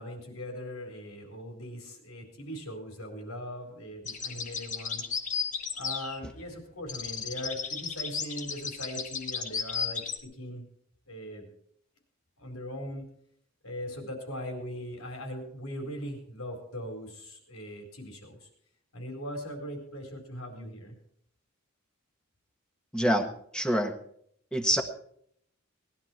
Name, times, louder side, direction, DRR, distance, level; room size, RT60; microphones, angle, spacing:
voice 1, 0.0-5.1 5.8-10.6 11.1-11.5 12.4-13.1 13.6-18.5 18.9-20.9, equal, 90° left, 4 dB, 4.5 m, -40 dB
sound 1, 4.1-6.5 6.9-10.2, left 6 dB, 35° left, 1.5 m, -34 dB
voice 2, 22.9-23.3 23.5-23.9 24.5-24.8, equal, 5° left, 5 dB, 1.3 m, -25 dB
20.0 x 11.5 x 4.6 m, 0.67 s
head